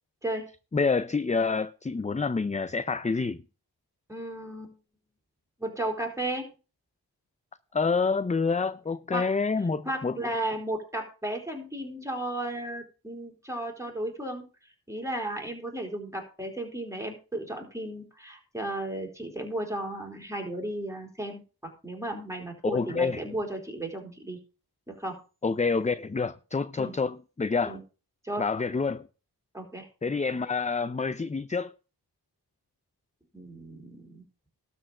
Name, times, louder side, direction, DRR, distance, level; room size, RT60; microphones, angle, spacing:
voice 1, 0.7-3.4 7.7-10.2 22.6-23.3 25.4-27.8 28.4-29.1 30.0-31.7, left 4 dB, 20° left, 0.5 m, -27 dB
voice 2, 4.1-4.8 5.6-6.5 9.1-9.3 9.9-14.5 14.9-21.4 21.8-24.4 24.9-25.2 26.8-26.9 27.7-27.8 28.2-28.4 29.5-29.9 33.3-34.2, right 1 dB, 5° right, 3.9 m, -34 dB
12.5 x 4.5 x 7.5 m
cardioid pair, 60°, 41 cm